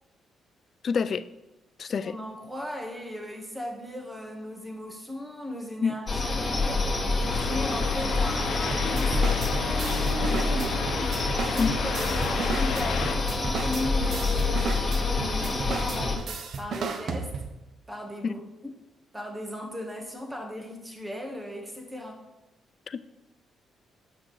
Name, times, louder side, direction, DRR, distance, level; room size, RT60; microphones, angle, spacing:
voice 1, 0.8-1.2 1.8-2.2 5.8-6.0 11.6-11.7 18.2-18.3 22.9-23.0, left 5 dB, 50° left, 14 dB, 0.3 m, -27 dB
voice 2, 1.8-10.8 11.5-16.2 16.6-17.3 17.9-18.7 19.1-22.2, left 1 dB, 10° right, 2 dB, 1.3 m, -37 dB
sound 1, 6.1-16.2, left 3 dB, 25° left, 1.6 m, -27 dB
sound 2, 7.2-13.1, left 4 dB, 80° left, 0.9 m, -33 dB
sound 3, 8.7-17.6, right 5 dB, 60° right, 0.6 m, -35 dB
7.2 x 6.5 x 3.1 m, 0.95 s
cardioid pair, 90°, 0 cm